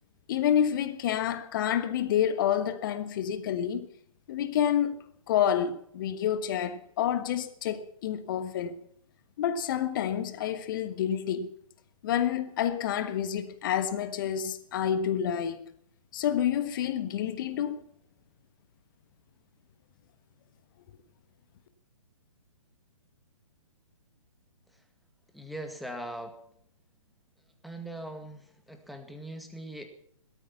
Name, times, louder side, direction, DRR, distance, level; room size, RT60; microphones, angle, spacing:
voice 1, 0.3-3.8 4.3-5.0 5.3-8.8 9.4-11.5 12.0-15.6 16.1-17.8, left 9 dB, 35° left, 1.3 m, -28 dB
voice 2, 25.3-26.3 27.6-28.4 28.7-29.9, right 1 dB, ahead, 2.0 m, -40 dB
17.5 x 13.0 x 5.9 m
figure-of-eight pair, 130°, 18 cm